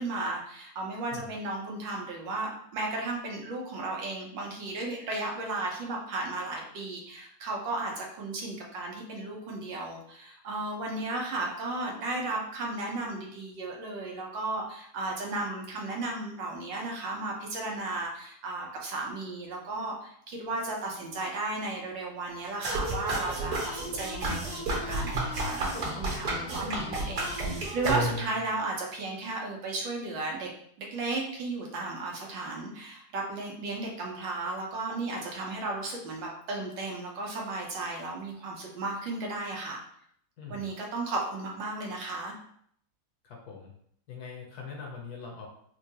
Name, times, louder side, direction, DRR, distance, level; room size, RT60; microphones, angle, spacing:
voice 1, 0.0-30.5 30.8-39.8 40.5-42.3, right 2 dB, 85° right, -1 dB, 1.5 m, -34 dB
sound 1, 22.6-28.4, right 2 dB, 55° right, 1.7 m, -31 dB
voice 2, 40.4-40.7 43.2-43.7 44.1-45.5, left 5 dB, 65° left, 0 dB, 1.2 m, -42 dB
4.6 x 2.2 x 2.9 m, 0.66 s
omnidirectional pair, 2.0 m